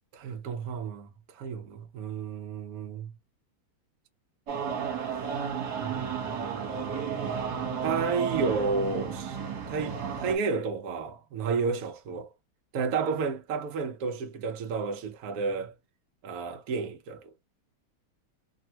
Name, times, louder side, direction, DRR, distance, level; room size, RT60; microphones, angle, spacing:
voice 1, 0.1-3.1 5.8-7.4 7.8-9.4 9.7-12.3 12.7-15.7 16.2-17.3, right 4 dB, 85° right, 0.8 m, -32 dB
sound 1, 4.5-10.4, right 7 dB, 55° right, 1.5 m, -33 dB
3.4 x 2.1 x 2.8 m
omnidirectional pair, 2.3 m